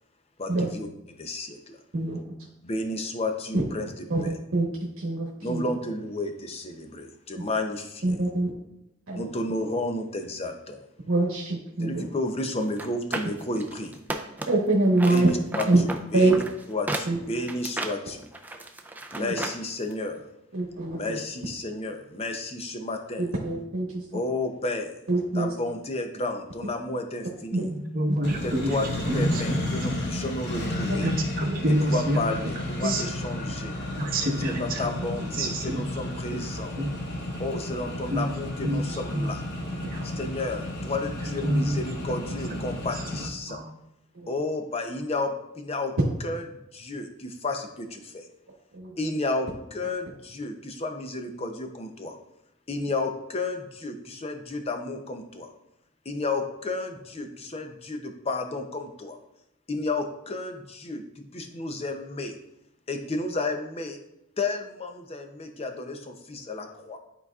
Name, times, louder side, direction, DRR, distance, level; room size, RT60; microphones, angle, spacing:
voice 1, 0.4-0.9 1.2-1.8 2.6-4.4 5.4-8.2 9.1-10.8 11.8-14.0 15.1-16.4 16.7-18.3 19.1-20.2 21.0-23.2 24.1-24.9 25.3-27.7 28.4-28.9 29.1-31.1 31.7-33.8 34.5-36.7 37.4-39.4 40.0-43.6 44.3-45.9 46.2-48.3 49.0-52.2 52.7-55.5 56.0-59.2 59.7-62.4 62.9-64.0 64.4-67.0, left 2 dB, 30° left, 5 dB, 0.6 m, -32 dB
voice 2, 1.9-2.3 3.5-3.6 4.1-4.7 5.0-5.6 7.4-7.5 8.0-8.5 9.1-9.2 11.1-12.0 14.5-15.3 15.6-15.8 16.1-16.4 17.1-17.2 19.2-19.3 20.5-21.2 23.2-24.0 25.1-25.5 28.5-28.6 30.9-31.0 31.4-31.5 32.8-32.9 44.1-44.3 48.7-48.9, right 2 dB, 70° right, -4 dB, 1.1 m, -25 dB
sound 1, 12.7-14.7 15.0-19.6 19.9-20.0, right 2 dB, 10° right, 0.4 m, -34 dB
voice 3, 27.5-28.8 29.1-29.4 29.9-30.0 31.0-32.5 32.8-33.0 34.0-35.9 36.5-36.9 38.1-38.3 38.6-39.3 39.8-40.1 41.4-41.8 42.5-42.6 43.5-43.7, right 1 dB, 45° right, -1 dB, 1.1 m, -28 dB
Accelerating revving vroom, 28.2-43.2, left 1 dB, 55° left, 1.2 m, -33 dB
11.5 x 4.0 x 2.4 m, 0.83 s
head